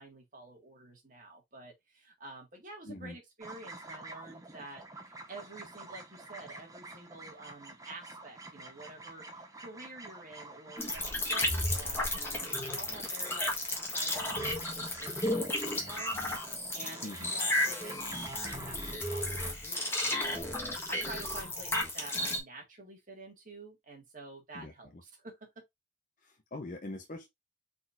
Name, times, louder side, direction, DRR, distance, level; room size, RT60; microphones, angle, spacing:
voice 1, 0.0-25.6, right 2 dB, 45° right, 1.8 m, -49 dB
voice 2, 2.9-3.2 17.0-17.3 24.5-25.0 26.2-27.3, left 1 dB, 45° left, 0.8 m, -43 dB
sound 1, 3.4-19.5, right 2 dB, 20° right, 0.9 m, -49 dB
sound 2, 10.8-22.4, left 1 dB, 15° left, 1.3 m, -33 dB
4.3 x 4.0 x 2.5 m
head